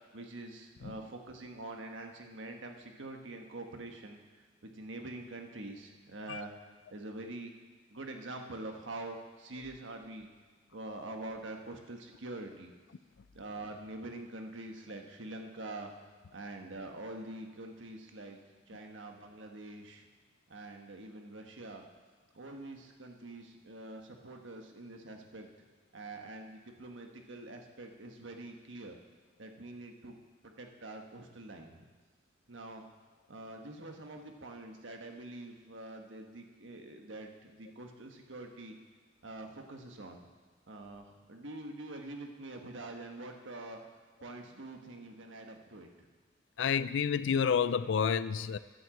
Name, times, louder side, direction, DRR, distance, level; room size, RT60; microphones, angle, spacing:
voice 1, 0.1-4.2 4.6-6.5 6.9-7.5 7.9-10.3 10.7-12.7 13.3-15.9 16.3-18.4 18.7-20.0 20.5-21.8 22.3-25.5 25.9-29.0 29.4-30.1 30.4-31.8 32.5-32.8 33.3-38.8 39.2-40.2 40.7-43.8 44.2-45.9, right 2 dB, 80° right, 3 dB, 1.4 m, -45 dB
voice 2, 46.6-48.6, left 7 dB, 75° left, 15 dB, 0.4 m, -29 dB
11.0 x 7.8 x 7.7 m, 1.4 s
head